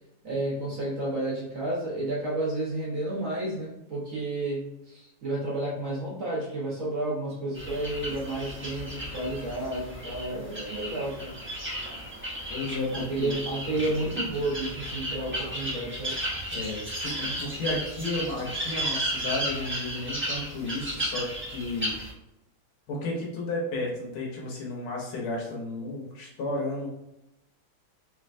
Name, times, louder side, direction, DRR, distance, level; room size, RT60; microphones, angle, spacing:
voice 1, 0.2-11.4 12.9-16.2, right 2 dB, 50° right, -5 dB, 1.1 m, -31 dB
sound 1, 7.5-22.1, right 1 dB, 20° right, 0.3 m, -34 dB
voice 2, 12.5-13.3 16.5-21.9 22.9-26.9, left 2 dB, 80° left, -3 dB, 1.8 m, -33 dB
3.7 x 3.3 x 2.5 m, 0.88 s
omnidirectional pair, 2.4 m